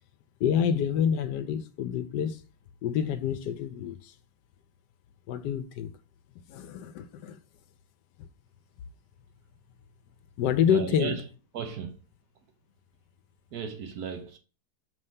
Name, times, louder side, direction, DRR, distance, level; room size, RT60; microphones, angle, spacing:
voice 1, 0.4-2.4 2.8-4.1 5.3-5.9 6.5-7.4 10.4-11.2, left 8 dB, 80° left, 1.2 m, -27 dB
voice 2, 10.7-11.3 11.5-12.0 13.5-14.4, right 7 dB, 65° right, 1.2 m, -35 dB
5.4 x 3.3 x 5.5 m
omnidirectional pair, 1.9 m